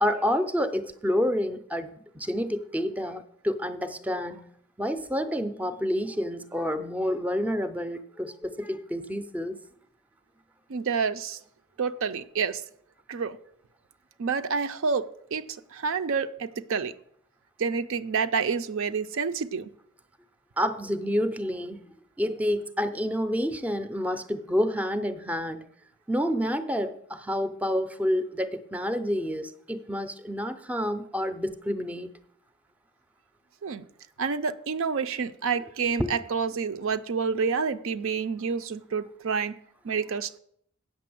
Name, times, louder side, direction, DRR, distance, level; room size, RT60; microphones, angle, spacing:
voice 1, 0.0-4.4 4.8-9.6 20.6-21.8 22.2-25.7 26.1-32.1 36.0-36.1, equal, 5° right, 0.5 m, -28 dB
voice 2, 10.7-11.4 11.8-12.6 13.1-13.4 14.2-15.1 15.3-15.4 15.7-16.9 17.6-19.7 33.6-33.8 34.2-39.5 39.8-40.4, right 5 dB, 65° right, 0.5 m, -28 dB
8.5 x 6.6 x 7.6 m
head